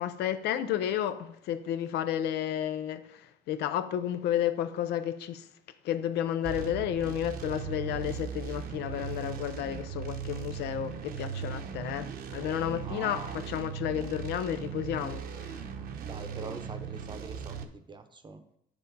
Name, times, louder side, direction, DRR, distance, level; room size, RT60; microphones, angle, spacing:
voice 1, 0.0-5.5 5.8-15.6, left 10 dB, 80° left, 0.7 m, -32 dB
sound 1, 6.4-17.6, right 7 dB, 65° right, 0.9 m, -38 dB
voice 2, 12.7-13.4 16.0-18.4, right 4 dB, 30° right, 0.8 m, -43 dB
8.7 x 7.0 x 4.0 m
cardioid pair, 110°, 17 cm